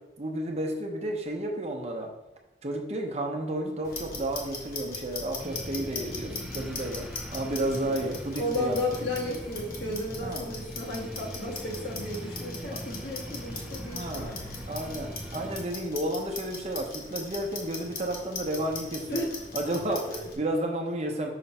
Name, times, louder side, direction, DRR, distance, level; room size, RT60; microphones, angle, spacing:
voice 1, 0.2-2.1 2.6-8.8 10.2-10.5 12.7-12.8 13.9-14.3 14.7-19.2 19.5-21.3, right 1 dB, 35° right, 2 dB, 0.8 m, -32 dB
Clock, 3.8-20.3, left 3 dB, 55° left, 1.1 m, -40 dB
sound 1, 5.4-15.7, equal, 5° right, 0.4 m, -41 dB
voice 2, 6.1-6.7 8.4-14.4 19.1-19.3, left 1 dB, 75° left, -2 dB, 1.5 m, -33 dB
5.7 x 3.1 x 5.4 m, 0.94 s
head